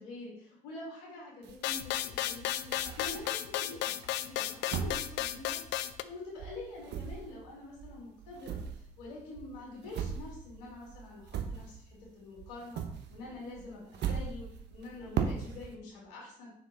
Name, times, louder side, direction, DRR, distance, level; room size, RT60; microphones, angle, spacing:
voice 1, 0.0-3.9 4.2-8.6 9.0-12.8 13.1-16.5, left 2 dB, 90° left, -4 dB, 2.5 m, -46 dB
sound 1, 1.4-3.6 4.0-6.1 6.4-12.1 12.4-15.8, right 7 dB, 65° right, 0.9 m, -39 dB
sound 2, 1.6-6.0, left 13 dB, 70° left, 0.4 m, -34 dB
6.4 x 4.6 x 4.0 m, 0.72 s
hypercardioid pair, 50°, 19 cm